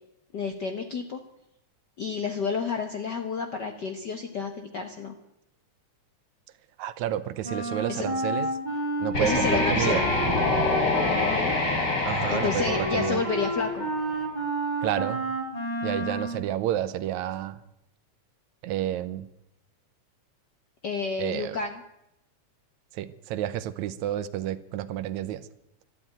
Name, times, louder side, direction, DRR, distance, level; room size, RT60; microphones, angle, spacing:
voice 1, 0.3-1.2 2.0-5.1 7.9-8.1 9.2-10.1 11.0-11.5 12.3-13.9 20.8-21.8, left 5 dB, 60° left, 5 dB, 1.1 m, -30 dB
voice 2, 6.8-8.5 9.0-10.1 12.0-13.2 14.8-15.2 15.8-17.6 18.6-19.3 21.2-21.6 22.9-25.5, right 12 dB, 80° right, 14 dB, 2.1 m, -30 dB
Wind instrument woodwind instrument, 7.4-16.4, right 1 dB, 15° left, 3.5 m, -31 dB
sound 1, 9.1-14.0, left 2 dB, 35° left, 3.7 m, -26 dB
12.5 x 12.5 x 9.1 m, 0.85 s
omnidirectional pair, 3.4 m